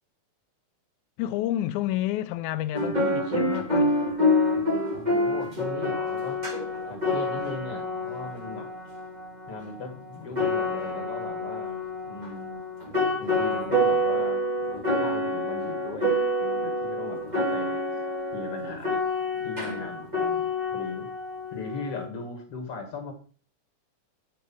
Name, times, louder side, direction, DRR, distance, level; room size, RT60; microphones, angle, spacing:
voice 1, 1.2-3.9, left 13 dB, 90° left, 2.0 m, -30 dB
sound 1, 2.7-22.1, left 1 dB, 35° right, 0.7 m, -27 dB
voice 2, 4.9-6.4 6.8-8.7 9.5-11.8 12.1-12.6 13.2-17.8 18.3-19.0 19.4-21.1 21.5-23.1, left 4 dB, 55° left, 2.4 m, -38 dB
9.1 x 5.5 x 5.5 m
omnidirectional pair, 3.4 m